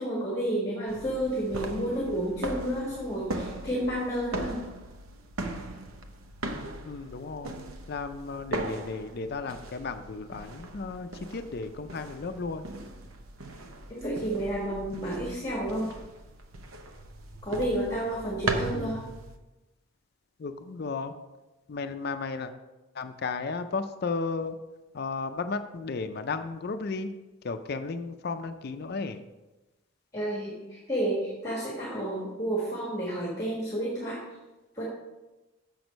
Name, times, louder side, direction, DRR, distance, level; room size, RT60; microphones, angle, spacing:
voice 1, 0.0-4.6 13.9-15.9 17.4-19.0 30.1-34.2 34.8-34.9, right 1 dB, 15° left, -4 dB, 1.5 m, -30 dB
sound 1, 0.9-19.4, right 2 dB, 90° right, 0.8 m, -39 dB
voice 2, 6.8-7.6 7.9-12.7 18.7-19.1 20.4-21.1 21.7-22.5 22.9-24.6 24.9-27.1 27.4-29.2, left 4 dB, 50° left, 9 dB, 0.4 m, -34 dB
6.9 x 6.2 x 5.2 m, 1.1 s
head